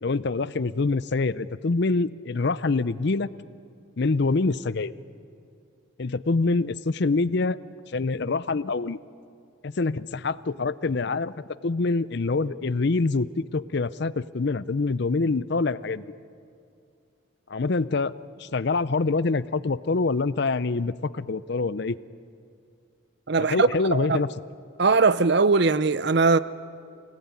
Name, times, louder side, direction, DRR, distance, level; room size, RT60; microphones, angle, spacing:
voice 1, 0.0-3.3 4.0-4.9 6.0-7.6 7.9-9.0 9.6-11.3 11.6-16.1 17.5-18.1 18.4-22.0 23.4-24.3, left 3 dB, 55° left, 0.6 m, -25 dB
voice 2, 23.3-24.2 24.8-26.4, right 4 dB, 55° right, 0.7 m, -20 dB
25.5 x 18.5 x 9.6 m
head